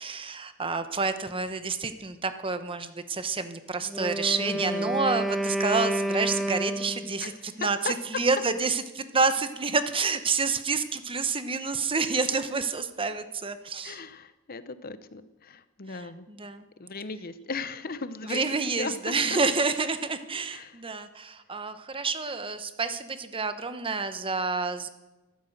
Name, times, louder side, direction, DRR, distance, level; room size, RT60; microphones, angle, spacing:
voice 1, 0.0-14.0 15.9-16.0 16.3-16.7 18.2-24.9, right 4 dB, 25° right, 10 dB, 1.0 m, -29 dB
Wind instrument woodwind instrument, 3.8-7.3, right 1 dB, ahead, 1.0 m, -30 dB
voice 2, 4.4-5.0 7.2-8.0 13.8-16.3 16.8-18.4 18.8-19.4 20.5-20.8, left 4 dB, 45° left, 13 dB, 0.8 m, -37 dB
14.5 x 12.5 x 6.6 m, 1.1 s
head